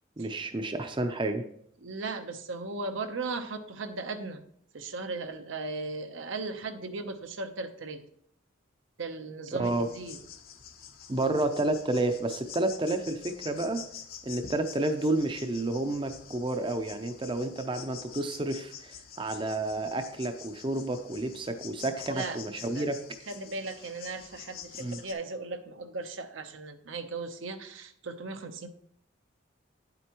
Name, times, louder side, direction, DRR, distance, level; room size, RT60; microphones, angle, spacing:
voice 1, 0.2-1.4 9.5-9.9 11.1-13.8 14.2-23.0 24.8-25.0, right 2 dB, 25° right, 8 dB, 0.5 m, -30 dB
voice 2, 1.8-4.4 4.7-8.0 9.0-10.2 22.1-22.4 22.7-22.9 23.3-28.7, right 3 dB, 80° right, 7 dB, 0.8 m, -37 dB
sound 1, 9.6-25.1, left 8 dB, 50° left, 0.7 m, -47 dB
9.3 x 7.8 x 3.0 m, 0.68 s
head